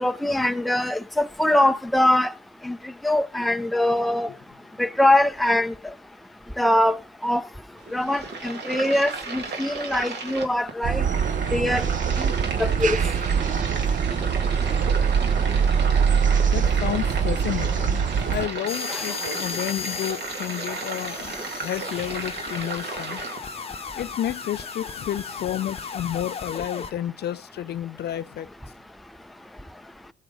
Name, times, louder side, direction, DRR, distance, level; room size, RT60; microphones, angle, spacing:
voice 1, 0.0-2.3 2.7-2.8 3.0-4.3 4.8-5.7 6.6-7.0 7.2-7.4 7.9-11.0 11.5-11.8 12.6-13.0, left 1 dB, ahead, 0.5 m, -22 dB
sound 1, 7.8-23.4, right 4 dB, 60° right, 2.0 m, -34 dB
sound 2, 10.8-18.5, right 7 dB, 40° right, 0.6 m, -23 dB
voice 2, 16.5-21.3 21.6-23.2 24.0-28.5, left 11 dB, 55° left, 0.4 m, -31 dB
sound 3, 18.7-26.9, left 6 dB, 30° left, 0.8 m, -36 dB
17.0 x 7.3 x 3.8 m
cardioid pair, 90°, 20 cm